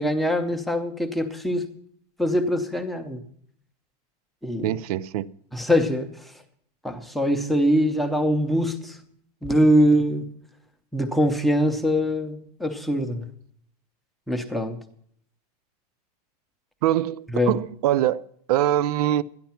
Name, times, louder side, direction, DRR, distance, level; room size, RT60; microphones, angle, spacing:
voice 1, 0.0-1.7 2.2-3.2 4.4-4.8 5.5-6.3 6.8-9.0 9.4-10.3 10.9-13.3 14.3-14.8 17.3-17.5, equal, ahead, 0.6 m, -23 dB
voice 2, 4.6-5.3 16.8-19.2, right 12 dB, 75° right, 0.5 m, -23 dB
12.5 x 10.5 x 5.7 m
supercardioid pair, 180°, 20 cm